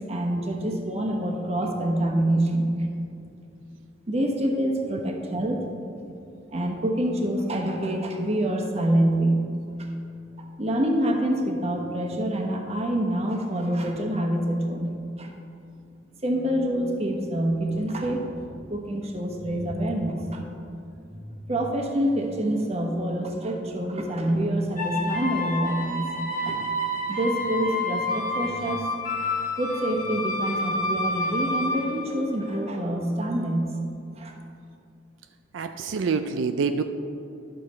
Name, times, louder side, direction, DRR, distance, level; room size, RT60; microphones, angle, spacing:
voice 1, 0.0-2.9 4.1-5.7 6.5-9.4 10.4-15.3 16.2-20.4 21.1-26.6 27.1-28.8 29.6-33.7 34.2-34.3, right 1 dB, 35° right, 2 dB, 1.1 m, -26 dB
sound 1, 24.8-32.7, left 1 dB, 45° left, 1.6 m, -29 dB
voice 2, 35.5-36.8, right 5 dB, 90° right, 8 dB, 0.4 m, -26 dB
11.5 x 6.6 x 4.3 m, 2.6 s
head